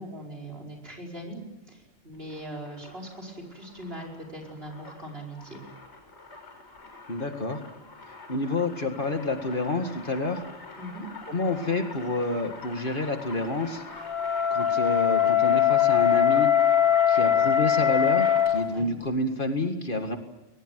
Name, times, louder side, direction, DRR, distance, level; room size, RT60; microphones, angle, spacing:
voice 1, 0.0-5.6 10.8-11.1 18.7-18.9, right 1 dB, 55° right, 0 dB, 5.3 m, -40 dB
sound 1, 2.1-18.8, left 3 dB, 65° left, 7.0 m, -44 dB
voice 2, 7.1-7.6 8.3-10.4 11.3-13.8 14.5-16.5 17.1-20.2, left 2 dB, 45° left, 6 dB, 2.1 m, -28 dB
Wind instrument woodwind instrument, 14.0-18.6, left 10 dB, 25° left, 2.5 m, -21 dB
21.5 x 20.5 x 9.3 m, 1.0 s
omnidirectional pair, 1.2 m